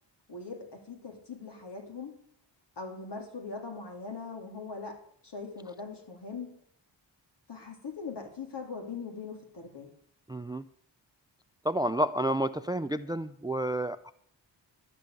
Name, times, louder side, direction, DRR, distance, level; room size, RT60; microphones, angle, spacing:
voice 1, 0.3-2.1 2.8-5.0 5.2-6.5 7.5-9.9, left 4 dB, 65° left, 2 dB, 3.2 m, -41 dB
voice 2, 10.3-10.6 11.6-14.1, right 1 dB, 10° right, 14 dB, 0.4 m, -30 dB
12.0 x 5.5 x 9.0 m, 0.66 s
cardioid pair, 60°, 45 cm